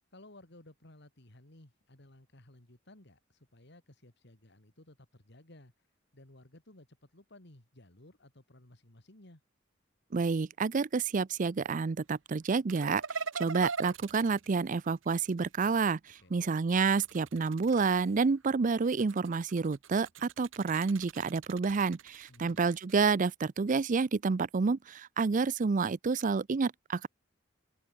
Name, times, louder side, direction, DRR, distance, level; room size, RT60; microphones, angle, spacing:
voice 1, 0.1-5.7 6.1-9.4 16.2-16.5 22.3-22.6, left 1 dB, 60° left, 3.3 m, -57 dB
voice 2, 10.1-27.1, right 4 dB, 40° right, 0.5 m, -29 dB
sound 1, 12.7-15.5 16.7-18.3 18.8-23.1, right 5 dB, 85° right, 1.5 m, -42 dB
head